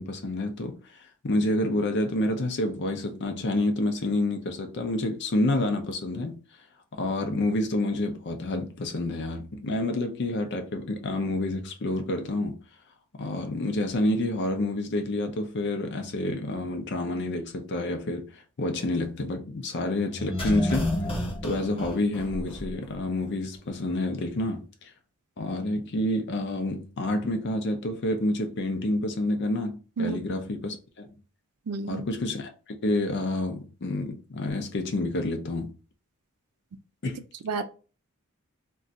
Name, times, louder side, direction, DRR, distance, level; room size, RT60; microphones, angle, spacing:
voice 1, 0.0-6.4 6.9-12.6 13.2-21.0 21.4-24.9 25.4-31.1 31.9-35.7 37.0-37.3, left 1 dB, 50° left, 0.5 m, -28 dB
sound 1, 20.1-22.9 23.2-23.3, left 1 dB, 25° left, 0.8 m, -30 dB
voice 2, 31.7-32.0 37.4-37.6, right 4 dB, 80° right, 0.4 m, -30 dB
2.5 x 2.3 x 3.8 m
head